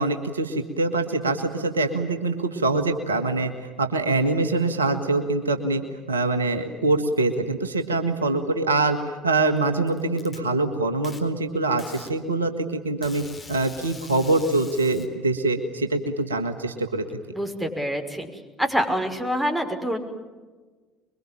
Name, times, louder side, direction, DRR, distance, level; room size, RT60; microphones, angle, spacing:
voice 1, 0.0-3.5 3.8-5.8 6.1-17.0, right 2 dB, 85° right, 8 dB, 1.7 m, -24 dB
Packing tape duct tape, 9.4-10.4 11.0-11.2 11.8-12.1 13.0-15.1, left 4 dB, 30° left, 4.0 m, -44 dB
voice 2, 17.3-18.3 18.6-20.0, equal, 5° right, 4 dB, 5.7 m, -26 dB
25.0 x 23.0 x 8.9 m, 1.3 s
figure-of-eight pair, 60°, 0 cm